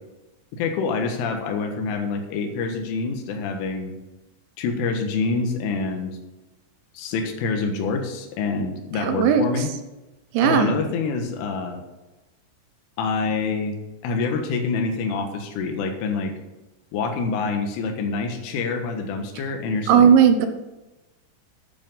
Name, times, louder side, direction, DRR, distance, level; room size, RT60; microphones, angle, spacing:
voice 1, 0.5-3.9 4.6-6.2 7.0-9.7 10.4-11.8 13.0-13.8 14.0-16.3 16.9-20.1, left 4 dB, 90° left, 5 dB, 3.9 m, -26 dB
voice 2, 9.0-9.4 10.3-10.7 19.9-20.5, right 8 dB, 80° right, 8 dB, 3.3 m, -16 dB
11.5 x 8.2 x 5.5 m, 1.1 s
omnidirectional pair, 5.5 m